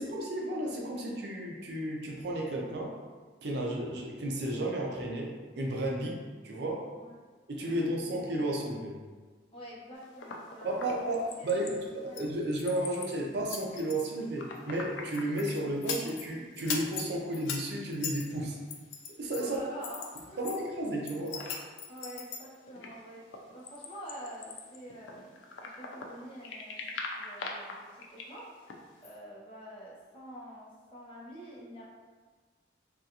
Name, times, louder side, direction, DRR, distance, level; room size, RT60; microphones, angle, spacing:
voice 1, 0.0-2.9 3.4-6.9 7.5-9.0 10.6-18.6 19.2-19.6 20.4-21.4, right 1 dB, 60° right, -1 dB, 0.5 m, -33 dB
voice 2, 7.0-7.3 7.7-7.9 9.5-11.0 11.4-11.6 12.0-12.2 19.4-20.4 21.9-31.9, equal, 30° left, -6 dB, 0.7 m, -47 dB
sound 1, 10.0-11.7 12.1-13.2 13.5-16.3 16.6-20.6 20.9-26.1 26.4-28.8 29.0-29.1, left 5 dB, 80° left, 0.4 m, -40 dB
3.5 x 2.4 x 2.8 m, 1.4 s
head